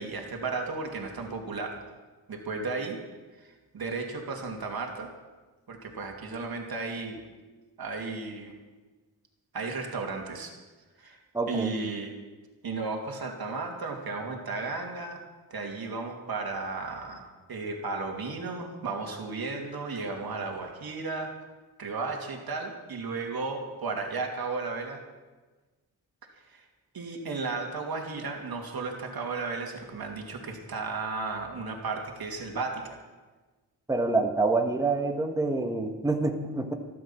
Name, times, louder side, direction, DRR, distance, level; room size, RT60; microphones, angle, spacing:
voice 1, 0.0-1.8 2.3-3.0 3.4-5.1 5.7-7.3 7.8-8.5 9.5-10.5 11.0-11.2 11.5-12.1 12.6-15.2 15.5-21.3 21.8-25.0 26.5-26.6 26.9-33.0, right 3 dB, 60° right, 2 dB, 2.7 m, -34 dB
voice 2, 11.3-11.7 33.9-36.7, right 3 dB, 10° right, 4 dB, 1.6 m, -27 dB
13.5 x 11.5 x 7.3 m, 1.3 s
cardioid pair, 70°, 40 cm